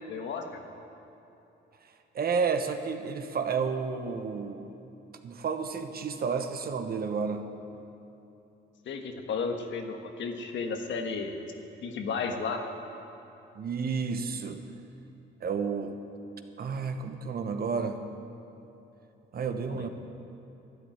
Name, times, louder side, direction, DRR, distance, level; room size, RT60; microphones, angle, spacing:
voice 1, 0.1-0.5 8.8-11.3 11.8-12.6 19.7-19.9, left 5 dB, 70° left, 4 dB, 1.5 m, -33 dB
voice 2, 2.1-4.7 5.2-7.4 13.6-14.6 15.4-16.0 16.6-18.0 19.3-19.9, right 5 dB, 50° right, 7 dB, 1.1 m, -31 dB
12.0 x 10.5 x 9.2 m, 3.0 s
cardioid pair, 90°, 20 cm